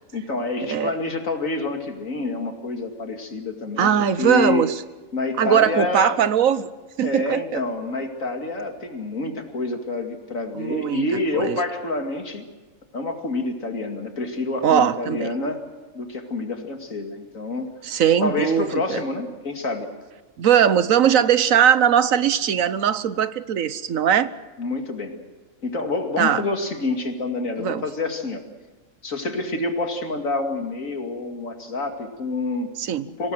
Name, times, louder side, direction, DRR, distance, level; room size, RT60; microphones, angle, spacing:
voice 1, 0.1-4.7 5.1-6.2 7.0-12.5 12.9-15.7 15.9-17.7 18.2-19.9 24.6-25.2 25.6-28.4 29.0-32.7 33.2-33.3, left 3 dB, 80° left, 4 dB, 2.8 m, -27 dB
voice 2, 3.8-4.7 5.4-6.7 7.0-7.6 10.5-11.0 11.4-11.6 14.6-15.3 17.8-19.0 20.4-24.3 26.2-26.4 27.6-27.8 32.8-33.0, right 9 dB, 90° right, 14 dB, 1.4 m, -20 dB
25.5 x 18.5 x 7.8 m, 1.2 s
omnidirectional pair, 1.4 m